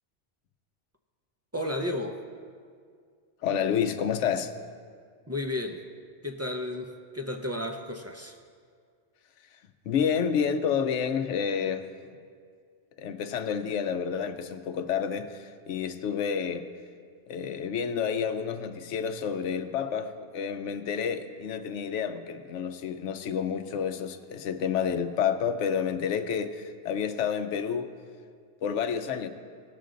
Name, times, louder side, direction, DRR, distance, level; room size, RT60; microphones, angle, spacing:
voice 1, 1.5-2.2 5.3-5.9 6.2-8.4, left 1 dB, 20° right, 3 dB, 0.4 m, -33 dB
voice 2, 3.4-4.5 9.9-11.9 13.0-16.6 17.3-27.9 28.6-29.3, left 7 dB, 80° left, 9 dB, 1.0 m, -29 dB
18.0 x 6.7 x 3.8 m, 2.1 s
omnidirectional pair, 1.2 m